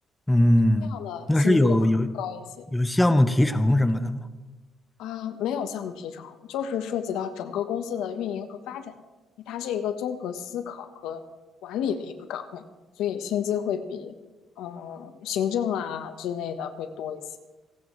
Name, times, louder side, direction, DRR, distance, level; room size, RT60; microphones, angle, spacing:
voice 1, 0.3-0.9 1.3-2.1 2.7-4.3, left 1 dB, 10° left, 9 dB, 1.0 m, -20 dB
voice 2, 0.8-1.9 2.1-2.7 5.0-8.9 9.5-11.2 11.6-12.6 13.0-14.1 14.6-17.2, left 9 dB, 90° left, 8 dB, 1.2 m, -31 dB
29.5 x 11.0 x 3.2 m, 1.2 s
cardioid pair, 105°, 0 cm